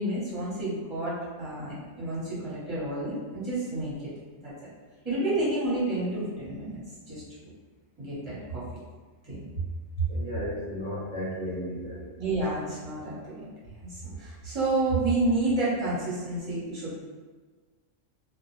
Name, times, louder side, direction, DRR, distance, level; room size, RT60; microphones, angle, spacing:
voice 1, 0.0-3.9 4.4-4.5 5.0-6.8 7.1-7.2 8.0-8.6 9.2-9.5 10.0-10.1 12.2-13.4 13.8-17.0, right 2 dB, 25° right, -10 dB, 1.0 m, -29 dB
voice 2, 10.1-12.1, equal, 45° right, -9 dB, 0.7 m, -34 dB
2.4 x 2.1 x 3.0 m, 1.4 s
omnidirectional pair, 1.4 m